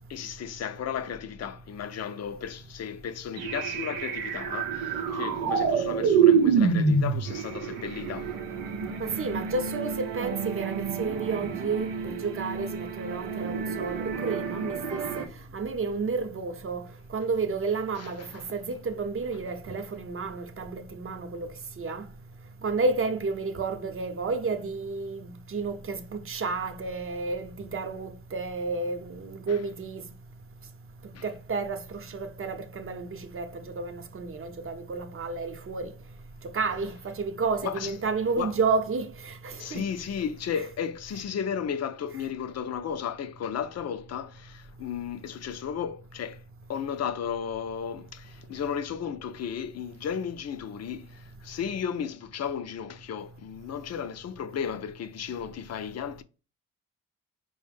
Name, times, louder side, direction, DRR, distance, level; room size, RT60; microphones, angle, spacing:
voice 1, 0.1-8.6 14.8-15.0 18.0-18.5 29.5-29.6 31.1-31.3 37.6-37.9 38.4-38.5 39.6-46.4 46.7-56.2, left 8 dB, 50° left, 0.5 m, -34 dB
sound 1, 3.4-15.3, right 6 dB, 90° right, 0.6 m, -27 dB
voice 2, 9.0-15.2 15.5-16.8 17.1-21.5 21.8-22.0 22.6-30.0 31.2-35.9 36.5-39.8, right 4 dB, 40° right, 0.8 m, -31 dB
4.7 x 2.1 x 3.4 m
supercardioid pair, 55°, 33 cm